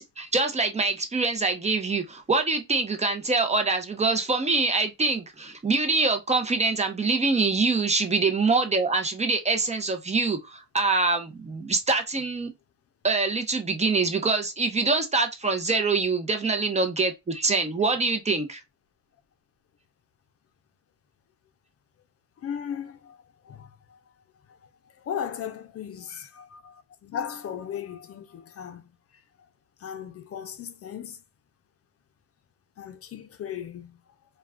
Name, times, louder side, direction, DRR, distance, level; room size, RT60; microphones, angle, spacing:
voice 1, 0.0-12.5 13.0-18.6, right 3 dB, 20° right, 0.6 m, -25 dB
voice 2, 22.4-24.2 24.5-29.2 29.8-31.2 32.8-34.0, left 8 dB, 50° left, 0.5 m, -37 dB
2.3 x 2.2 x 3.3 m
cardioid pair, 90°, 30 cm